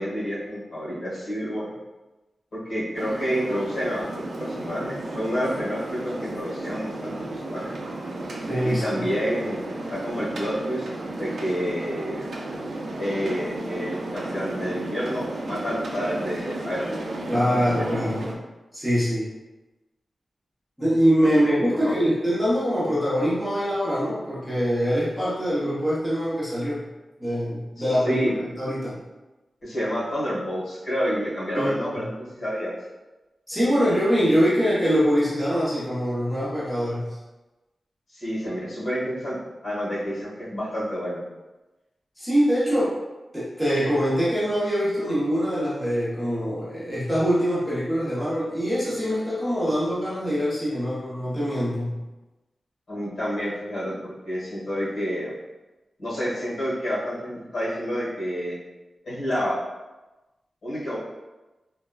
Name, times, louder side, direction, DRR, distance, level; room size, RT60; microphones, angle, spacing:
voice 1, 0.0-1.7 2.5-7.7 8.6-9.6 9.9-10.8 11.2-12.3 13.0-17.0 17.5-17.8 21.2-21.3 21.8-22.0 27.8-28.3 29.6-32.7 38.1-39.4 39.6-41.2 52.9-55.3 56.0-58.6 59.0-59.6 60.6-61.0, equal, 60° left, -10 dB, 1.4 m, -29 dB
sound 1, 2.9-18.3, right 2 dB, 75° right, 0.4 m, -33 dB
voice 2, 8.5-8.8 17.3-18.4 18.7-19.3 20.8-26.9 27.2-29.0 31.5-32.0 33.5-37.2 42.2-43.0 43.3-52.0, equal, ahead, -10 dB, 0.7 m, -24 dB
3.3 x 2.1 x 2.3 m, 1.1 s
wide cardioid pair, 150°, 0 cm